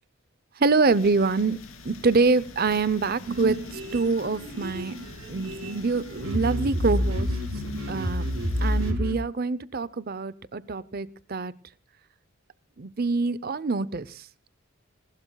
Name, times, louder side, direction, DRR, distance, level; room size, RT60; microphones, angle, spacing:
voice 1, 0.6-1.6 1.8-5.0 5.3-7.3 7.9-8.3 8.6-11.5 12.8-14.3, right 4 dB, 40° right, 18 dB, 0.6 m, -25 dB
sound 1, 0.8-8.9, left 3 dB, 65° left, 2.6 m, -46 dB
sound 2, 3.3-9.2, equal, 70° right, 4.5 m, -29 dB
19.5 x 19.0 x 2.3 m, 0.38 s
head